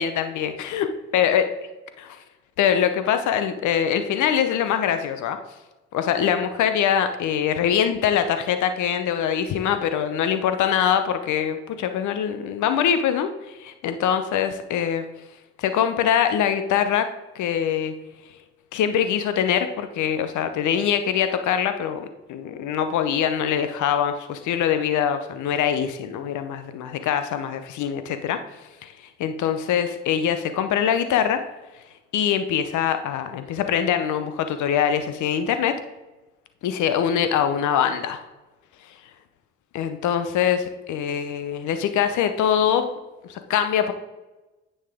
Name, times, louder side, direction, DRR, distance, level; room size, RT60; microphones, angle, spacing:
voice 1, 0.0-0.9 1.1-1.5 2.0-2.2 2.6-5.4 5.9-15.1 15.6-17.9 18.7-28.4 28.8-28.9 29.2-31.5 32.1-35.8 36.6-38.2 39.7-42.9 43.2-43.9, left 8 dB, 75° left, 9 dB, 0.8 m, -23 dB
9.4 x 5.8 x 3.5 m, 1.1 s
hypercardioid pair, 45°, 30 cm